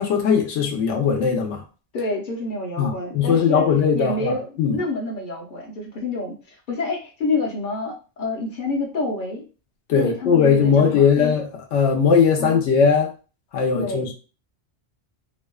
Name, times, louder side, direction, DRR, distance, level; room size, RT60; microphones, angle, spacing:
voice 1, 0.0-1.6 2.8-4.8 9.9-13.1 13.5-14.1, left 6 dB, 85° left, 0.9 m, -19 dB
voice 2, 1.9-3.7 3.9-9.4 9.9-11.4 12.4-12.6 13.7-14.1, left 2 dB, 50° left, 0.8 m, -28 dB
2.6 x 2.1 x 2.2 m
omnidirectional pair, 1.1 m